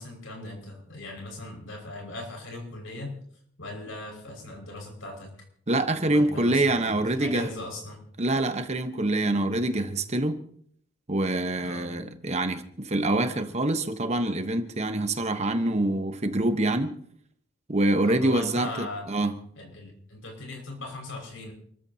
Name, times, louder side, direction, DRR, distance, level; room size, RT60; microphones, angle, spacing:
voice 1, 0.0-3.2 3.6-5.3 6.1-8.0 11.6-11.9 18.0-19.1 19.6-21.5, left 2 dB, 70° left, 5.8 m, -39 dB
voice 2, 5.7-7.5 8.2-10.4 11.1-17.0 17.7-19.3, right 1 dB, 35° right, 1.1 m, -25 dB
28.5 x 14.0 x 2.9 m
head